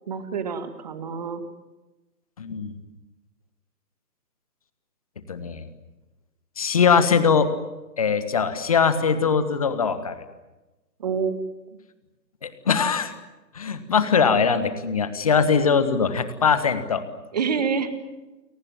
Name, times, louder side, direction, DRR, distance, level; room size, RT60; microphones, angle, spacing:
voice 1, 0.1-1.4 11.0-11.3 17.3-17.9, right 6 dB, 25° right, 10 dB, 2.1 m, -27 dB
voice 2, 2.4-2.7 5.3-5.7 6.6-7.5 8.0-10.2 12.4-13.1 13.5-17.0, left 6 dB, 20° left, 11 dB, 1.4 m, -21 dB
30.0 x 23.0 x 7.5 m, 1.1 s
figure-of-eight pair, 155°, 50 cm